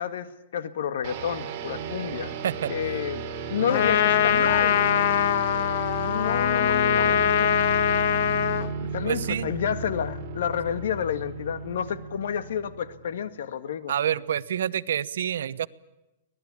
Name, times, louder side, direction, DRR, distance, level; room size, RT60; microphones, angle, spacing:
voice 1, 0.0-2.4 2.7-5.3 6.0-7.5 8.8-13.9, left 8 dB, 75° left, 12 dB, 1.8 m, -30 dB
sound 1, 1.0-13.2, right 4 dB, 40° right, 4.6 m, -34 dB
voice 2, 2.4-2.7 3.6-3.9 9.0-9.5 13.9-15.7, right 9 dB, 80° right, 17 dB, 0.9 m, -28 dB
Trumpet, 3.7-8.7, left 10 dB, 55° left, 1.4 m, -22 dB
24.5 x 19.0 x 8.6 m, 0.97 s
hypercardioid pair, 150°, 0 cm